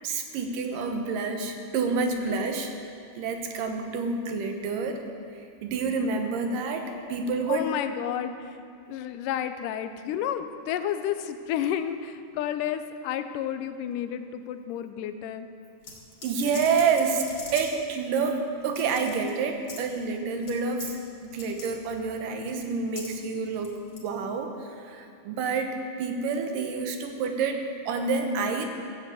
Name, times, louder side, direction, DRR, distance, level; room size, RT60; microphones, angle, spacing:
voice 1, 0.0-2.7 3.2-5.0 5.6-7.7 16.2-20.9 21.2-23.7 24.0-24.5 24.8-28.7, right 4 dB, 85° right, 5 dB, 2.8 m, -28 dB
voice 2, 7.5-8.6 8.9-15.5, left 10 dB, 90° left, 9 dB, 2.2 m, -31 dB
sound 1, 15.8-17.8 18.2-18.3 18.6-19.3 19.6-19.8 20.4-20.5 20.8-21.0 21.3-21.7 22.5-23.1 23.5-24.1, left 3 dB, 40° left, 2.7 m, -42 dB
15.0 x 7.6 x 7.9 m, 2.4 s
omnidirectional pair, 3.7 m